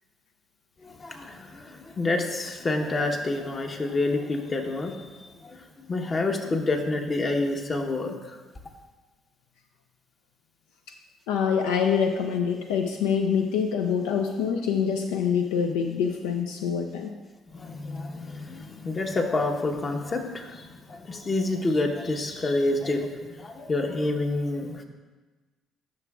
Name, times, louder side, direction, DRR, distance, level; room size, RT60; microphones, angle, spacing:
voice 1, 0.8-8.4 17.5-24.8, left 2 dB, 35° left, 3 dB, 1.0 m, -28 dB
voice 2, 11.3-17.1, left 7 dB, 80° left, 4 dB, 0.4 m, -25 dB
10.5 x 6.0 x 2.4 m, 1.3 s
hypercardioid pair, 55°, 0 cm